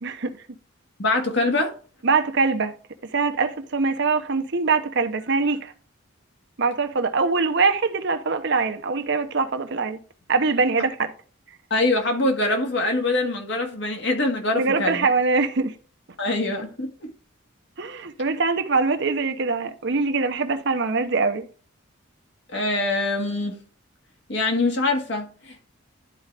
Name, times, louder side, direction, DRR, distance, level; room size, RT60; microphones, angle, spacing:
voice 1, 0.0-0.4 2.0-2.7 3.0-5.7 6.6-10.0 10.3-11.1 14.6-15.8 17.8-21.5, right 4 dB, 60° right, 0.8 m, -23 dB
voice 2, 1.0-1.7 11.7-15.1 16.2-17.1 22.5-23.6 24.3-25.7, left 2 dB, 60° left, 1.7 m, -24 dB
11.5 x 4.7 x 3.3 m
head